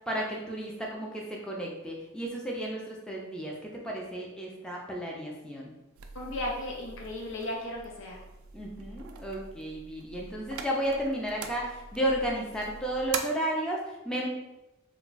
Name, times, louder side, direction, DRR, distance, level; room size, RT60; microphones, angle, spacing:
voice 1, 0.1-5.7 8.5-14.3, right 1 dB, 5° left, -3 dB, 0.4 m, -33 dB
sound 1, 6.0-13.2, right 6 dB, 75° right, 0.3 m, -43 dB
voice 2, 6.1-8.2, left 1 dB, 65° left, -1 dB, 0.7 m, -35 dB
2.3 x 2.2 x 3.8 m, 0.94 s
head